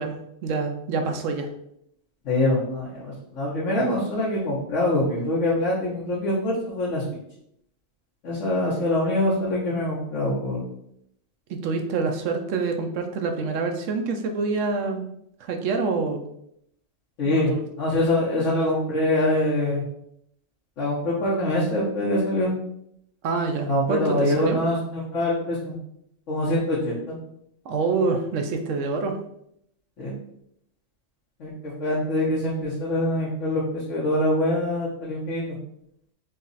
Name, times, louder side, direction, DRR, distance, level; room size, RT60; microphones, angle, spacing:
voice 1, 0.0-1.5 11.5-15.1 15.4-16.2 17.3-17.6 23.2-24.6 27.7-29.2, right 4 dB, 75° right, 5 dB, 0.9 m, -26 dB
voice 2, 2.2-7.0 8.2-10.6 17.2-19.8 20.8-22.5 23.7-25.7 26.3-27.2 30.0-30.1 31.4-35.4, left 1 dB, 70° left, -7 dB, 1.3 m, -24 dB
3.9 x 2.4 x 4.0 m, 0.74 s
omnidirectional pair, 1.3 m